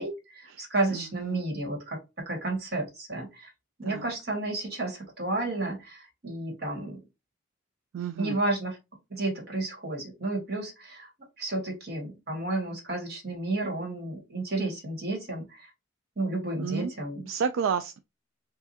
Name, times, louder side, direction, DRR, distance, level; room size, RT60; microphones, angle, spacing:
voice 1, 0.0-2.0 2.3-3.5 3.8-7.0 8.2-8.8 9.1-11.1 11.4-15.7 16.2-17.3, right 2 dB, 55° right, 1.8 m, -32 dB
voice 2, 0.9-1.4 3.9-4.0 7.9-8.4 16.6-16.9 17.3-18.0, right 6 dB, 85° right, 0.3 m, -30 dB
4.7 x 2.5 x 2.7 m
head